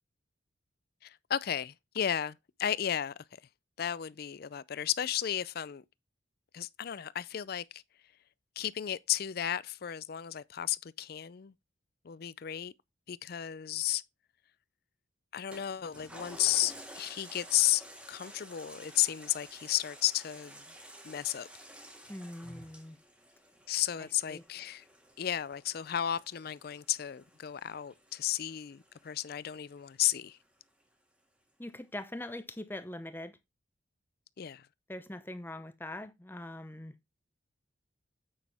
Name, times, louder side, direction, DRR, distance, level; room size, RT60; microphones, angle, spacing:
voice 1, 1.0-3.1 3.8-5.8 6.5-7.8 8.6-11.5 12.0-12.7 13.1-14.0 15.3-20.6 21.0-21.5 23.7-24.8 25.2-30.4 34.4-34.7, left 11 dB, 50° left, 0.4 m, -33 dB
Toilet flush, 15.5-30.3 30.8-30.9, equal, 5° right, 1.5 m, -52 dB
voice 2, 22.1-23.0 24.0-24.4 31.6-33.4 34.9-36.9, left 1 dB, 10° left, 0.7 m, -42 dB
8.8 x 6.2 x 3.4 m
head